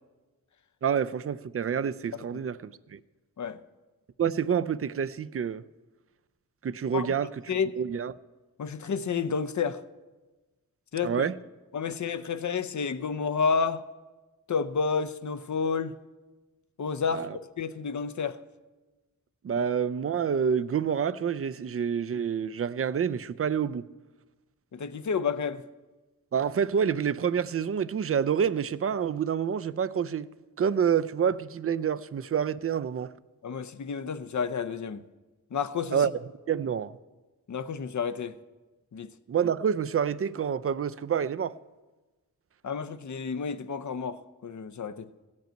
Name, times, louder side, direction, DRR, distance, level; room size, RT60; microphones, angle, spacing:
voice 1, 0.8-3.0 4.2-5.6 6.6-8.1 11.0-11.4 17.1-17.4 19.4-23.8 26.3-30.3 30.6-33.1 35.9-36.1 36.5-36.9 39.3-41.6, right 7 dB, 40° right, 0.4 m, -28 dB
voice 2, 8.6-9.8 10.9-11.1 11.7-13.8 14.5-16.0 16.8-17.3 17.6-18.4 19.5-19.6 24.7-25.6 33.4-35.0 35.5-36.0 37.5-38.4 38.9-39.1 42.6-45.1, left 5 dB, 55° left, 0.6 m, -30 dB
15.0 x 5.3 x 9.0 m
wide cardioid pair, 80°, 35 cm